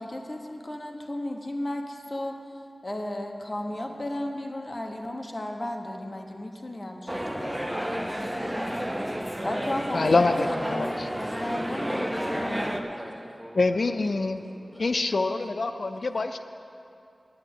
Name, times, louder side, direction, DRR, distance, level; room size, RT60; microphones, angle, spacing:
voice 1, 0.0-2.4 2.8-8.1 9.4-12.6, left 1 dB, 35° left, 3 dB, 1.1 m, -35 dB
voice 2, 3.6-4.0 11.9-16.2, equal, 10° left, 0 dB, 1.3 m, -45 dB
sound 1, 7.1-12.8, equal, 10° right, 0.8 m, -31 dB
voice 3, 9.9-11.1 13.6-14.4 14.8-16.4, left 3 dB, 65° left, 8 dB, 0.4 m, -25 dB
9.0 x 8.6 x 7.8 m, 2.6 s
wide cardioid pair, 80°, 0 cm